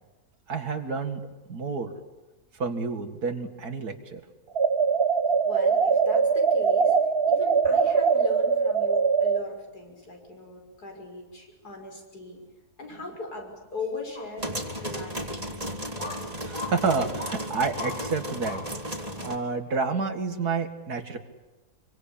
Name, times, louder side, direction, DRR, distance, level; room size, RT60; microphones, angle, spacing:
voice 1, 0.5-1.2 1.5-1.9 2.6-4.2 16.4-18.6 19.2-21.2, right 4 dB, 75° right, 7 dB, 2.6 m, -29 dB
sound 1, 4.5-9.4, right 5 dB, 40° right, 1.4 m, -22 dB
voice 2, 5.4-12.4 12.8-15.6, left 3 dB, 80° left, 2 dB, 6.6 m, -39 dB
sound 2, 14.2-14.3 15.0-15.1 16.0-16.2 16.5-16.7 17.2-17.4 17.8-18.0 18.4-18.6 19.1-19.2, left 3 dB, 60° left, 6.0 m, -36 dB
sound 3, 14.4-19.4, equal, 25° right, 2.7 m, -34 dB
26.5 x 24.0 x 8.7 m, 1.1 s
omnidirectional pair, 1.6 m